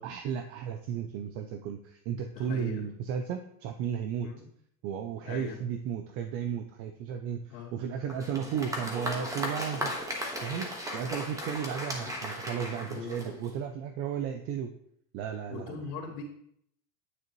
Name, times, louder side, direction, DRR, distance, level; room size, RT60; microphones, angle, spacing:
voice 1, 0.0-4.3 4.8-9.9 10.4-14.7 15.1-15.8, right 8 dB, 30° right, 7 dB, 0.4 m, -34 dB
voice 2, 2.3-2.9 4.2-4.4 5.2-5.6 7.5-7.8 12.0-12.1 12.8-13.4 15.5-16.2, left 6 dB, 70° left, -10 dB, 2.8 m, -41 dB
Applause, 8.1-13.7, equal, 5° right, 1.4 m, -36 dB
9.6 x 7.7 x 3.1 m, 0.71 s
supercardioid pair, 130°, 49 cm